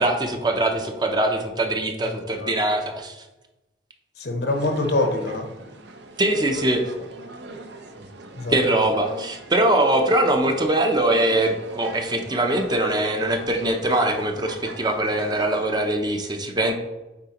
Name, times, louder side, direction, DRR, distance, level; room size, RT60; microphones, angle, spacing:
voice 1, 0.0-3.2 6.2-6.9 8.5-16.7, right 1 dB, 25° right, 4 dB, 0.6 m, -22 dB
voice 2, 2.0-2.5 4.2-5.5 8.3-8.6, left 2 dB, 70° left, 5 dB, 0.8 m, -25 dB
sound 1, 4.5-15.7, right 3 dB, 75° right, 0.6 m, -41 dB
8.5 x 4.2 x 2.9 m, 1.0 s
head